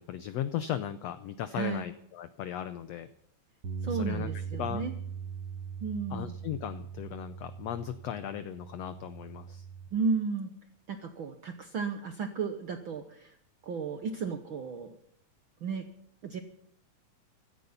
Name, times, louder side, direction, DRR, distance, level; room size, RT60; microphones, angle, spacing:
voice 1, 0.0-3.1 3.8-4.8 6.1-9.7, left 10 dB, 80° left, 12 dB, 1.4 m, -37 dB
voice 2, 1.5-1.9 3.8-4.9 5.8-6.3 9.9-10.5 10.9-13.4 13.7-15.0 15.6-15.8 16.2-16.4, right 5 dB, 80° right, 7 dB, 1.1 m, -33 dB
Bass guitar, 3.6-9.9, right 6 dB, 50° right, 2.5 m, -40 dB
16.0 x 13.5 x 5.7 m, 0.69 s
omnidirectional pair, 3.8 m